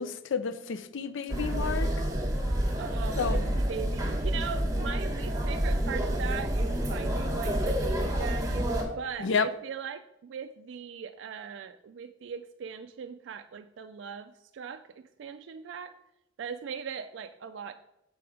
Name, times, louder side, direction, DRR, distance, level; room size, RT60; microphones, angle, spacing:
voice 1, 0.0-1.9 3.2-3.6 9.2-9.5, left 5 dB, 80° left, 0.4 m, -30 dB
sound 1, 1.3-8.8, equal, 15° right, 1.1 m, -28 dB
voice 2, 2.8-8.7 9.0-14.8 15.2-16.0 16.4-17.7, right 6 dB, 75° right, 0.3 m, -39 dB
6.8 x 4.7 x 5.0 m
head